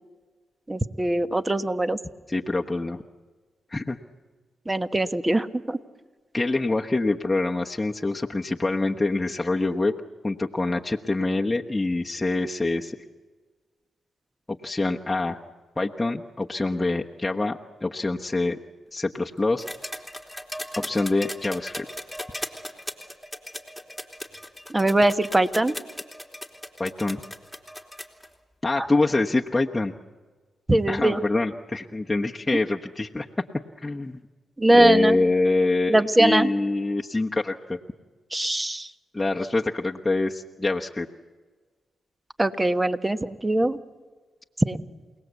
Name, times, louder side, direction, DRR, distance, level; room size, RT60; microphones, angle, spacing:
voice 1, 0.7-2.0 4.7-5.8 24.7-25.7 28.8-28.9 30.7-31.2 34.6-35.2 35.9-36.5 38.3-38.9 42.4-43.8 44.6-44.8, right 1 dB, 20° right, 11 dB, 1.4 m, -21 dB
voice 2, 2.3-3.0 3.7-4.0 6.3-9.9 10.2-13.0 14.6-15.4 15.8-18.6 18.9-19.6 20.8-21.9 26.8-27.2 28.6-29.9 30.9-33.3 33.8-34.2 34.7-37.8 39.1-41.1, left 2 dB, 20° left, 0 dB, 1.2 m, -25 dB
sound 1, 19.6-28.3 29.5-29.6, left 1 dB, ahead, 3.1 m, -37 dB
28.5 x 18.5 x 8.3 m, 1.4 s
supercardioid pair, 45°, 0 cm